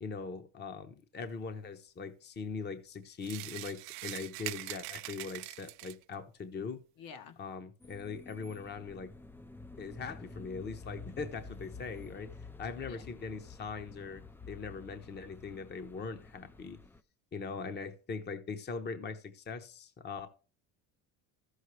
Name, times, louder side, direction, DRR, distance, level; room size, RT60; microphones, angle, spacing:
voice 1, 0.0-6.8 7.4-9.1 9.8-16.8 17.3-20.3, left 5 dB, 30° left, 0.9 m, -41 dB
sound 1, 3.2-6.1, right 21 dB, 85° right, 0.5 m, -43 dB
voice 2, 7.0-7.4 12.9-13.1, left 6 dB, 60° left, 1.4 m, -49 dB
sound 2, 7.8-17.0, left 3 dB, 5° left, 0.4 m, -50 dB
14.0 x 6.5 x 3.2 m
cardioid pair, 110°, 37 cm